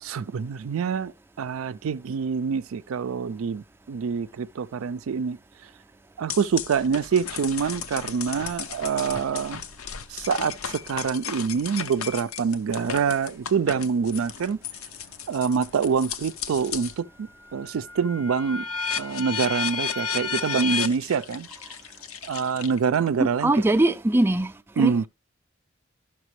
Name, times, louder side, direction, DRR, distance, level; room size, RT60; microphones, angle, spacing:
voice 1, 0.0-5.4 6.2-9.6 10.1-14.6 15.3-18.7 19.0-21.5 22.2-23.5 24.8-25.1, right 6 dB, 75° right, 0.4 m, -26 dB
sound 1, 6.3-17.0 17.4-23.1, left 6 dB, 85° left, 0.7 m, -34 dB
voice 2, 23.2-25.1, right 1 dB, 10° right, 0.4 m, -22 dB
12.0 x 5.8 x 3.1 m
head